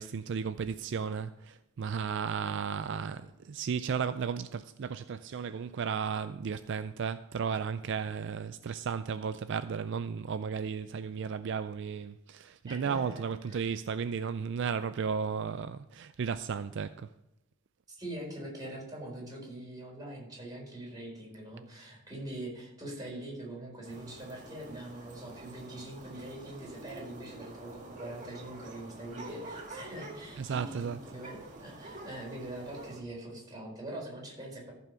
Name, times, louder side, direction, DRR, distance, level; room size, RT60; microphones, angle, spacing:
voice 1, 0.0-17.1 30.4-31.0, right 6 dB, 60° right, 0.4 m, -34 dB
voice 2, 12.7-13.2 13.5-13.6 17.9-34.7, right 1 dB, 20° right, 4.4 m, -43 dB
sound 1, 23.8-33.0, right 2 dB, 35° right, 2.3 m, -47 dB
14.5 x 5.7 x 6.2 m
head